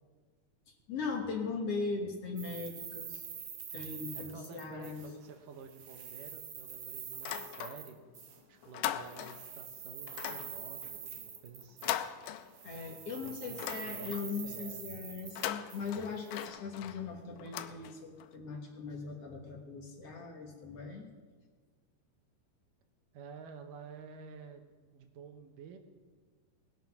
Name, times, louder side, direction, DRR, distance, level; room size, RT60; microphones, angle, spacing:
voice 1, 0.9-3.3 3.7-5.0 12.6-21.2, left 4 dB, 55° left, 1 dB, 2.1 m, -39 dB
sound 1, 2.4-5.3 5.6-8.4 9.0-12.3 12.5-16.5, right 8 dB, 60° right, 1.7 m, -46 dB
voice 2, 4.1-8.0 8.5-12.0 12.9-14.8 23.1-25.8, right 5 dB, 85° right, 5 dB, 2.7 m, -51 dB
sound 2, 7.1-8.1 8.4-9.6 10.1-12.9 13.3-14.4 15.2-18.3, left 12 dB, 85° left, 2.1 m, -40 dB
20.0 x 7.7 x 5.9 m, 1.5 s
omnidirectional pair, 3.7 m